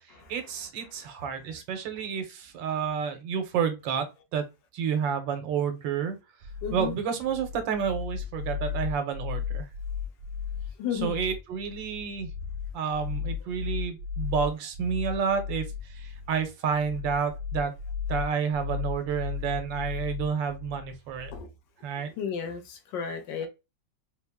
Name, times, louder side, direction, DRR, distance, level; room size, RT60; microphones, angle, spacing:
voice 1, 0.3-4.1 4.3-4.5 4.7-6.2 6.7-9.7 10.9-12.3 12.7-17.7 18.1-21.3 21.8-22.1 23.4-23.5, right 7 dB, 85° right, 1.5 m, -30 dB
sound 1, 6.4-21.4, left 7 dB, 55° right, 0.9 m, -35 dB
voice 2, 6.6-6.9 10.8-11.1 21.3-21.5 22.2-23.5, left 7 dB, 80° left, 1.4 m, -33 dB
4.1 x 2.1 x 3.4 m
omnidirectional pair, 2.0 m